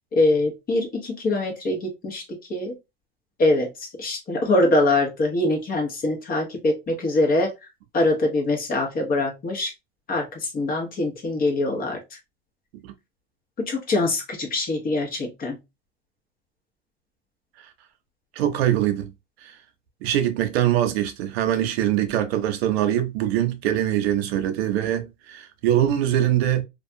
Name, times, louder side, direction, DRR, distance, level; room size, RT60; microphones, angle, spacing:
voice 1, 0.1-2.2 2.5-2.7 3.4-7.7 7.9-9.7 10.1-12.2 13.6-15.6, left 2 dB, 30° left, 1.0 m, -23 dB
voice 2, 18.4-19.1 19.4-19.5 20.0-26.6, right 11 dB, 85° right, 0.6 m, -23 dB
2.5 x 2.3 x 2.6 m
supercardioid pair, 115°, 30 cm